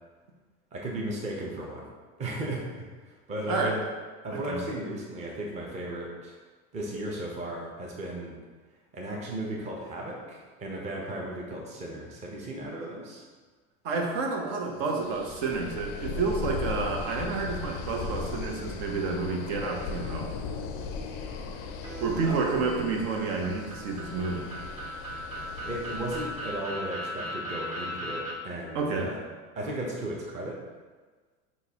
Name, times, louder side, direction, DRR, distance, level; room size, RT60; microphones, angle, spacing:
voice 1, 0.7-1.9 2.2-3.8 4.2-6.4 6.7-8.4 8.9-13.2 22.2-22.5 25.6-29.2 29.5-30.6, right 1 dB, 15° right, -2 dB, 0.6 m, -35 dB
voice 2, 3.5-3.8 4.3-4.6 13.8-20.3 22.0-24.6 28.7-29.1, right 4 dB, 65° right, 1 dB, 0.9 m, -30 dB
sound 1, 14.9-26.7, left 4 dB, 35° left, 0.4 m, -38 dB
sound 2, 21.8-28.3, equal, 50° right, 1.1 m, -38 dB
6.4 x 2.4 x 2.8 m, 1.4 s
supercardioid pair, 125°, 40 cm